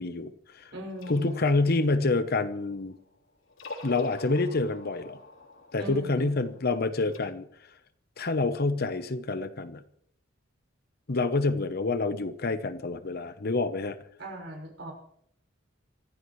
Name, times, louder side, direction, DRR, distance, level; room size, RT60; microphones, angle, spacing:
voice 1, 0.0-0.7 1.1-3.0 3.8-5.2 5.7-7.5 8.2-9.8 11.1-14.0, left 3 dB, 50° left, 11 dB, 0.9 m, -27 dB
voice 2, 0.7-1.5 5.8-6.4 14.2-14.9, right 1 dB, 65° right, 0 dB, 6.3 m, -39 dB
sound 1, 0.9-3.1 3.5-7.2, left 2 dB, 80° left, 3.5 m, -46 dB
25.5 x 15.5 x 3.2 m, 0.72 s
head